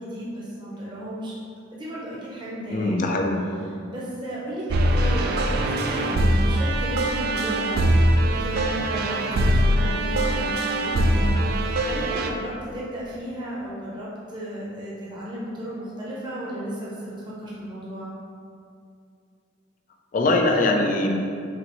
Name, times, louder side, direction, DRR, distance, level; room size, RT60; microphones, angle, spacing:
voice 1, 0.0-1.3 1.7-3.0 3.9-18.1, equal, 25° right, -7 dB, 0.8 m, -34 dB
voice 2, 2.7-3.4 20.1-21.1, left 2 dB, 45° left, 1 dB, 0.4 m, -22 dB
sound 1, 4.7-12.3, right 1 dB, 55° right, 0.3 m, -22 dB
5.7 x 2.6 x 3.1 m, 2.4 s
head